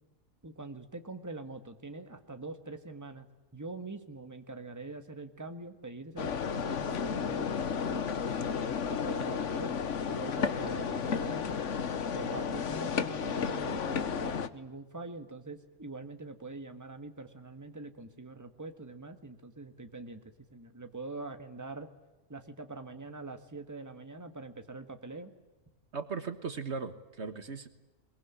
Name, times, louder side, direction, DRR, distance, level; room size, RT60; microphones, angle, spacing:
voice 1, 0.4-3.2 3.5-9.8 10.1-11.6 12.1-20.2 20.5-21.9 22.3-25.3, right 3 dB, 15° right, 8 dB, 1.7 m, -44 dB
sound 1, 6.2-14.5, left 6 dB, 65° left, 1.4 m, -33 dB
voice 2, 25.9-27.7, right 5 dB, 60° right, 10 dB, 1.6 m, -37 dB
22.5 x 22.0 x 9.9 m, 1.1 s
omnidirectional pair, 1.3 m